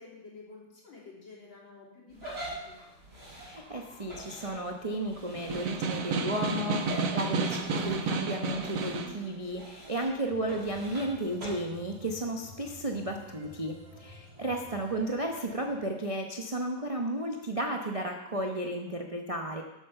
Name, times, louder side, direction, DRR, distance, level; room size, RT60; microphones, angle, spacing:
voice 1, 0.0-2.4 2.7-2.8 7.5-7.9, left 3 dB, 65° left, -4 dB, 4.0 m, -50 dB
sound 1, 2.1-11.5, right 1 dB, 70° right, 6.4 m, -45 dB
voice 2, 3.4-19.6, right 1 dB, 45° right, 2 dB, 0.4 m, -33 dB
Snare drum, 5.3-9.2, right 4 dB, 90° right, 2.0 m, -31 dB
sound 2, 10.3-15.9, equal, 20° right, 0.9 m, -51 dB
12.5 x 8.4 x 5.7 m, 0.99 s
omnidirectional pair, 2.3 m